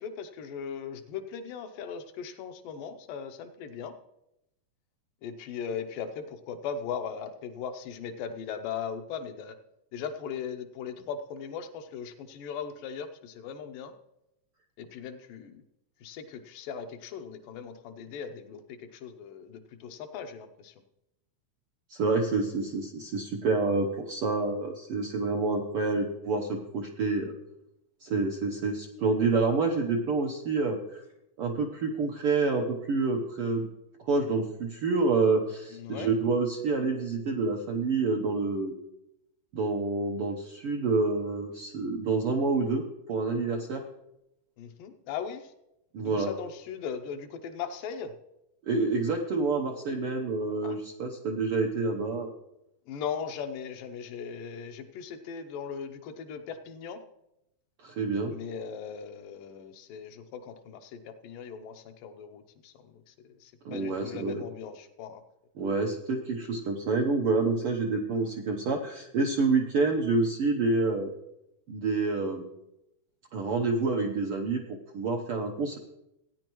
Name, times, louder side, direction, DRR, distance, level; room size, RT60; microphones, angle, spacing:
voice 1, 0.0-4.0 5.2-9.5 9.9-13.9 14.8-15.6 16.0-20.7 35.7-36.1 44.6-45.5 46.0-48.2 50.6-50.8 52.9-57.0 58.3-63.1 63.4-65.2, left 7 dB, 85° left, 7 dB, 2.5 m, -39 dB
voice 2, 21.9-27.3 28.0-31.0 31.4-33.7 34.1-38.7 39.5-43.8 45.9-46.3 48.7-52.3 57.8-58.3 63.6-64.4 65.6-71.1 71.7-72.4 73.3-74.6 74.9-75.8, right 3 dB, 75° right, 2 dB, 1.3 m, -28 dB
17.0 x 9.8 x 3.0 m, 0.85 s
omnidirectional pair, 3.8 m